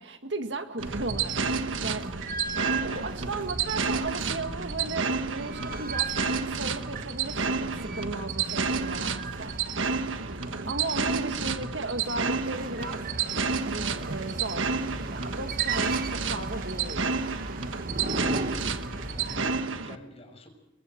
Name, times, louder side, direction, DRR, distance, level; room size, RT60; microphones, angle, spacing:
voice 1, 0.0-2.1 2.8-9.5 10.1-13.0 13.7-14.7 15.1-17.1, right 2 dB, 65° right, 7 dB, 1.9 m, -36 dB
sound 1, 0.8-19.6, right 3 dB, 45° right, 1.5 m, -37 dB
sound 2, 0.8-20.0, right 5 dB, 90° right, 1.4 m, -31 dB
voice 2, 18.3-18.7 19.1-20.5, left 1 dB, 30° left, 4 dB, 6.2 m, -46 dB
27.5 x 23.0 x 4.6 m, 0.89 s
head